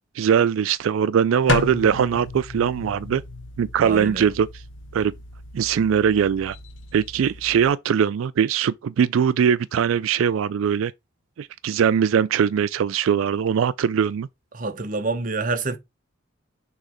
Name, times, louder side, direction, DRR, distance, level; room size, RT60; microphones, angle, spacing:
voice 1, 0.2-3.2 3.6-4.6 4.9-5.1 5.5-6.6 6.9-10.9 11.4-14.3, right 7 dB, 90° right, 0.3 m, -21 dB
sound 1, 1.5-7.7, left 3 dB, 70° left, 0.9 m, -33 dB
voice 2, 3.8-4.2 14.5-15.8, right 3 dB, 40° right, 0.8 m, -27 dB
6.4 x 3.1 x 5.0 m
head